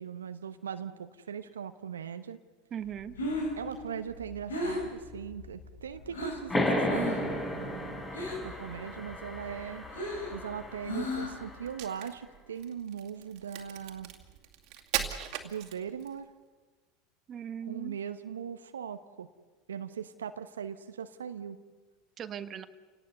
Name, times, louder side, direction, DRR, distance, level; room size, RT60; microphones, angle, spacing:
voice 1, 0.0-2.4 3.6-8.0 8.4-9.8 10.3-14.1 15.4-16.3 17.7-19.3 19.7-21.6, right 8 dB, 80° right, 10 dB, 0.9 m, -40 dB
voice 2, 2.7-3.2 15.1-15.3 17.3-18.0 22.2-22.6, right 8 dB, 35° right, 10 dB, 1.4 m, -39 dB
Breathing, 2.9-6.5 6.9-7.3 7.6-8.6 9.0-11.5, left 1 dB, 80° left, 4.8 m, -35 dB
sound 1, 6.5-11.7, left 1 dB, 25° left, 8.0 m, -34 dB
Crack, 11.6-16.2, right 11 dB, 55° right, 2.4 m, -38 dB
29.5 x 18.5 x 6.8 m, 1.4 s
hypercardioid pair, 80°, 0 cm